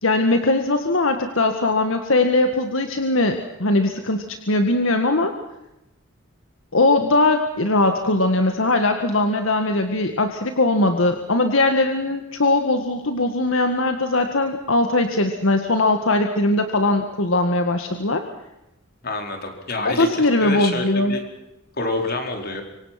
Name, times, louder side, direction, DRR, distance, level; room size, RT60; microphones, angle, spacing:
voice 1, 0.0-5.3 6.7-18.2 19.9-21.2, left 2 dB, 75° left, 6 dB, 1.9 m, -20 dB
voice 2, 19.0-21.2 21.7-22.6, left 2 dB, 50° left, 4 dB, 4.5 m, -27 dB
26.0 x 24.5 x 6.0 m, 0.92 s
head